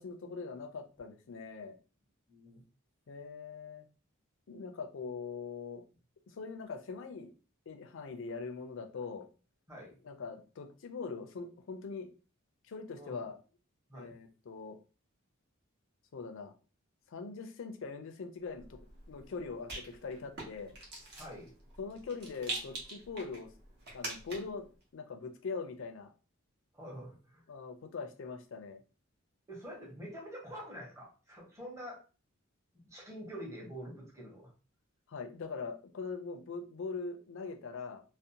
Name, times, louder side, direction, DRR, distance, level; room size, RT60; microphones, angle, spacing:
voice 1, 0.0-1.8 3.1-3.9 4.5-5.8 6.3-7.3 7.7-9.3 10.0-12.1 12.7-13.4 13.9-14.8 16.1-16.5 17.1-18.7 19.1-20.8 21.8-23.5 23.9-24.7 24.9-26.1 27.5-28.8 35.1-38.0, left 4 dB, 65° left, 6 dB, 0.4 m, -42 dB
voice 2, 2.3-2.6 9.7-10.0 12.9-13.2 13.9-14.1 21.2-21.5 26.7-27.4 29.5-32.0 32.9-34.5, equal, 15° right, -3 dB, 0.9 m, -46 dB
Rattle, 18.5-24.6, right 2 dB, 50° right, 0.9 m, -45 dB
2.5 x 2.0 x 2.8 m, 0.36 s
head